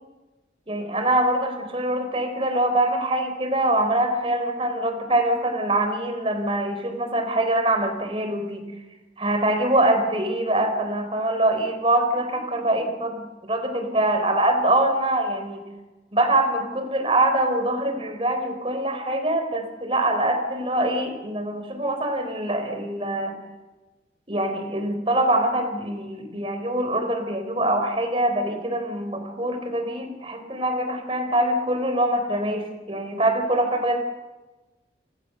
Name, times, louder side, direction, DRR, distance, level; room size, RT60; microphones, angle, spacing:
voice 1, 0.7-8.7 9.2-15.6 16.1-23.3 24.3-34.0, right 1 dB, 30° right, 7 dB, 4.0 m, -24 dB
29.5 x 19.0 x 6.9 m, 1.2 s
head